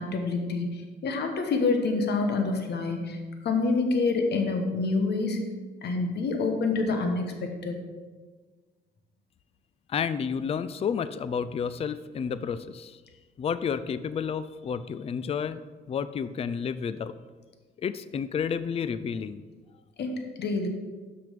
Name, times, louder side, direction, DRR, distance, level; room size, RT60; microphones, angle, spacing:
voice 1, 0.0-5.4 5.8-7.8 20.0-20.7, left 3 dB, 60° left, 5 dB, 1.1 m, -27 dB
voice 2, 9.9-13.0 13.4-15.6 15.9-17.1 17.8-19.4, left 7 dB, 30° left, 14 dB, 0.4 m, -31 dB
6.1 x 6.0 x 5.2 m, 1.4 s
cardioid pair, 90°, 19 cm